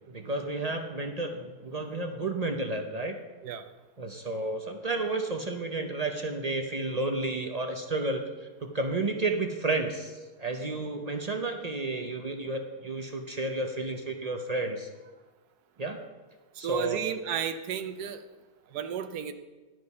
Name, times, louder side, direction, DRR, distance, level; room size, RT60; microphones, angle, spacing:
voice 1, 0.1-3.1 4.0-14.9 15.8-16.0 16.6-17.0, right 2 dB, 50° right, 4 dB, 0.4 m, -31 dB
voice 2, 16.6-18.2 18.7-19.3, right 8 dB, 80° right, 9 dB, 1.2 m, -33 dB
11.0 x 7.6 x 5.4 m, 1.2 s
omnidirectional pair, 1.7 m